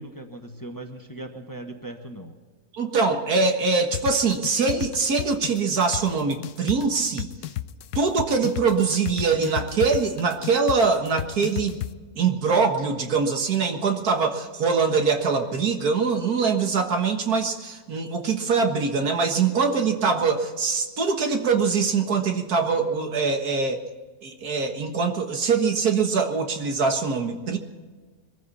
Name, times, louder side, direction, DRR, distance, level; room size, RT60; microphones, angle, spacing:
voice 1, 0.0-2.3, right 2 dB, 15° left, 4 dB, 1.3 m, -38 dB
voice 2, 2.7-7.3 8.0-11.8 12.2-23.9 24.2-27.6, right 5 dB, 75° right, 5 dB, 2.0 m, -23 dB
sound 1, 3.9-11.9, left 13 dB, 80° left, 1.2 m, -32 dB
22.5 x 14.5 x 4.2 m, 1.4 s
omnidirectional pair, 1.6 m